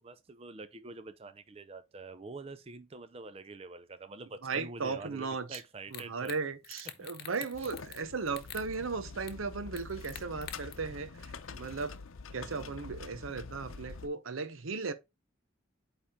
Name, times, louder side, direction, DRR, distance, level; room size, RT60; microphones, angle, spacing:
voice 1, 0.0-6.4 7.0-7.1 7.6-7.7 12.3-12.8, right 3 dB, 30° right, 0.5 m, -46 dB
voice 2, 4.4-5.6 5.9-12.0 12.3-14.9, right 4 dB, 85° right, 0.8 m, -36 dB
sound 1, 5.5-5.6 5.9-6.4 6.6-8.0 8.3-8.7 9.3-9.4 9.8-10.7, left 10 dB, 50° left, 1.0 m, -45 dB
sound 2, 7.5-14.1, left 4 dB, 90° left, 0.7 m, -46 dB
8.8 x 3.5 x 3.6 m
head